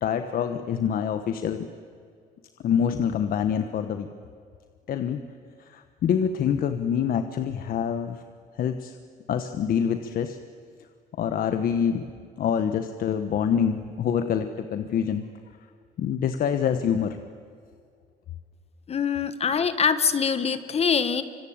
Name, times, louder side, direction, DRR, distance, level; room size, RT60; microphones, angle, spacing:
voice 1, 0.0-1.7 2.6-4.1 4.9-5.2 5.6-8.2 8.5-8.9 9.3-10.4 11.2-12.1 12.4-15.2 16.0-17.2, left 8 dB, 60° left, 8 dB, 1.3 m, -26 dB
voice 2, 18.9-21.2, left 6 dB, 35° left, 12 dB, 1.4 m, -24 dB
25.5 x 24.0 x 8.9 m, 2.2 s
cardioid pair, 110°, 17 cm